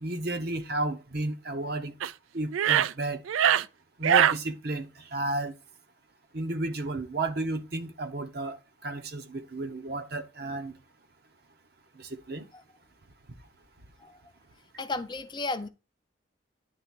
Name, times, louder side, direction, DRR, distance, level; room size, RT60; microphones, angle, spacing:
voice 1, 0.0-1.9 2.3-3.2 4.0-5.5 6.3-8.6 8.8-10.7 12.0-12.4, right 2 dB, 50° right, 0.9 m, -32 dB
sound 1, 2.0-2.1 2.5-2.9 3.3-3.6 4.0-4.4, right 9 dB, 80° right, 0.3 m, -22 dB
voice 2, 14.8-15.7, left 3 dB, 20° left, 0.5 m, -33 dB
9.9 x 3.5 x 6.1 m
head